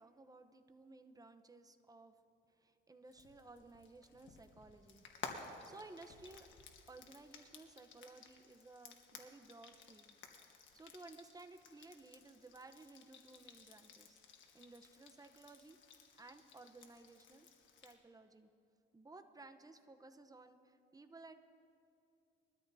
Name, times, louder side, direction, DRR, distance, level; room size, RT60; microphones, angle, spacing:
voice 1, 0.0-2.1 2.5-5.0 5.6-6.5 6.9-10.2 10.7-14.2 14.5-15.8 16.2-17.5 17.8-18.5 18.9-21.3, right 3 dB, 20° right, 7 dB, 0.9 m, -57 dB
Frying (food), 3.1-18.0, left 5 dB, 70° left, 1.4 m, -56 dB
21.5 x 13.0 x 2.8 m, 2.7 s
cardioid pair, 90°, 20 cm